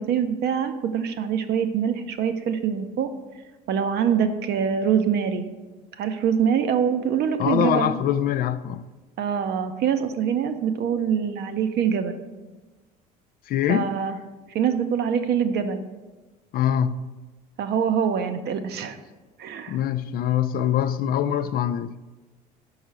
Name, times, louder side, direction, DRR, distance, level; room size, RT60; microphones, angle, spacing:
voice 1, 0.0-3.1 3.7-5.5 6.0-7.9 9.2-12.2 13.7-14.2 14.5-15.8 17.6-19.0 19.4-19.8, right 7 dB, 55° right, 0.7 m, -24 dB
voice 2, 7.4-8.8 13.5-14.0 16.5-17.1 19.7-22.0, left 10 dB, 50° left, 0.4 m, -24 dB
5.4 x 4.9 x 6.1 m
hypercardioid pair, 70°, 20 cm